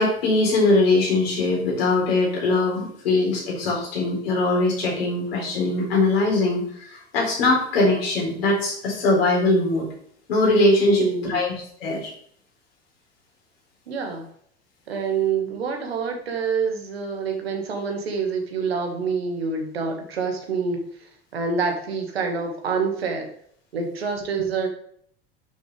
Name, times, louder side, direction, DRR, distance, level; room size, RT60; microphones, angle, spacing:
voice 1, 0.0-9.9 10.3-11.5 11.8-12.1, left 2 dB, 65° left, -2 dB, 4.3 m, -21 dB
voice 2, 10.8-11.5 13.9-14.3 14.9-23.3 23.7-24.7, right 5 dB, 70° right, 3 dB, 2.1 m, -27 dB
10.5 x 6.6 x 3.5 m, 0.62 s
figure-of-eight pair, 75°, 32 cm